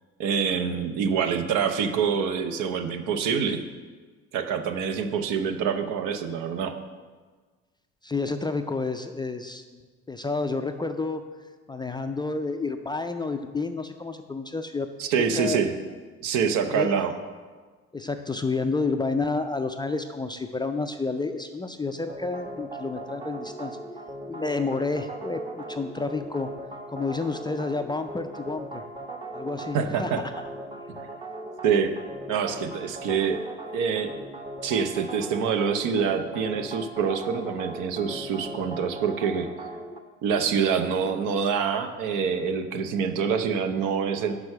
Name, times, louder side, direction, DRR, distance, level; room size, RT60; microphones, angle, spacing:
voice 1, 0.2-3.6 4.3-6.8 15.0-15.7 16.2-17.1 29.7-30.2 30.9-31.1 31.6-31.9 32.3-33.4 33.7-34.1 34.6-39.5 40.2-44.3, right 6 dB, 65° right, 7 dB, 0.8 m, -26 dB
voice 2, 8.0-9.8 10.1-11.2 11.7-14.9 15.3-15.7 16.7-17.0 17.9-23.8 24.3-26.5 26.9-28.8 29.3-30.2, left 3 dB, 15° left, 7 dB, 0.4 m, -30 dB
sound 1, 22.1-40.0, right 1 dB, 15° right, 0.8 m, -39 dB
6.1 x 4.8 x 6.5 m, 1.4 s
hypercardioid pair, 65°, 34 cm